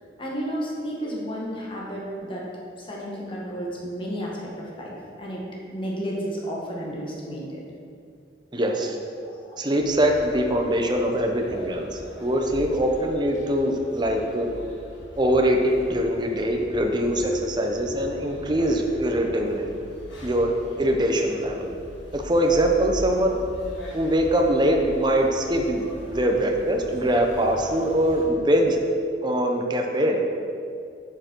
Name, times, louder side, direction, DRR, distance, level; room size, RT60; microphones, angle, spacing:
voice 1, 0.2-2.4 2.8-4.9 5.2-5.4 5.7-7.6 9.2-9.6, equal, 25° left, -4 dB, 1.6 m, -32 dB
voice 2, 8.5-9.0 9.6-14.5 15.2-19.7 20.2-20.5 20.8-21.7 22.1-23.4 23.9-25.8 26.1-28.8 29.2-30.2, right 1 dB, 25° right, 2 dB, 0.8 m, -23 dB
sound 1, 9.8-28.2, equal, 85° left, 1.9 m, -41 dB
8.9 x 7.2 x 4.6 m, 2.5 s
head